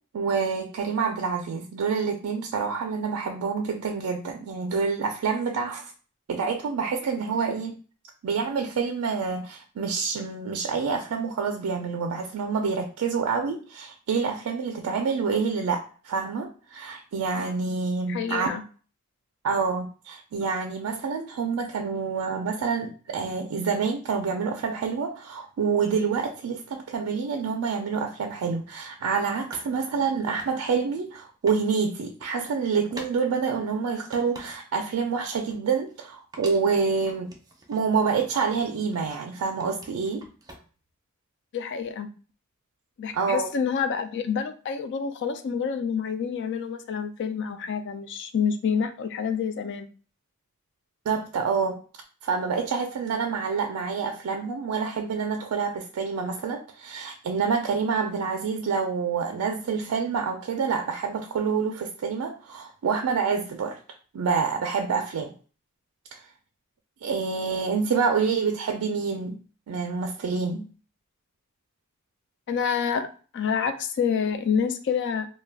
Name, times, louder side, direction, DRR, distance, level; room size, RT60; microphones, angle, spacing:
voice 1, 0.1-5.9 6.3-7.7 8.2-18.5 19.4-37.3 37.7-40.3 43.1-43.5 51.1-51.8 52.2-63.8 64.1-65.3 66.1-66.2 67.0-69.4 69.7-70.7, right 5 dB, 85° right, 3 dB, 0.4 m, -27 dB
voice 2, 18.1-18.6 41.5-42.1 43.0-49.9 67.9-68.1 72.5-73.1 73.3-75.3, left 6 dB, 55° left, 8 dB, 0.4 m, -28 dB
sound 1, 28.4-28.6 29.5-31.7 32.0-32.4 32.9-33.2 33.6-34.8 35.2-36.1 36.3-37.9 38.2-39.3 39.6-40.9, right 1 dB, 15° right, 0.5 m, -47 dB
2.3 x 2.1 x 3.3 m, 0.39 s
head